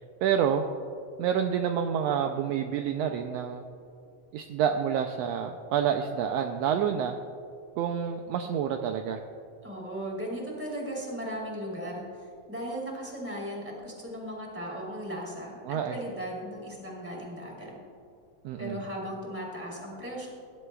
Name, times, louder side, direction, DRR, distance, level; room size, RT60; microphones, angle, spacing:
voice 1, 0.2-0.6 1.2-3.6 4.3-7.2 7.8-9.2 15.6-16.0 18.4-18.8, right 8 dB, 80° right, 5 dB, 1.5 m, -28 dB
voice 2, 9.6-17.8 18.6-20.3, equal, 5° right, -4 dB, 2.9 m, -37 dB
21.5 x 11.0 x 2.3 m, 2.5 s
omnidirectional pair, 3.3 m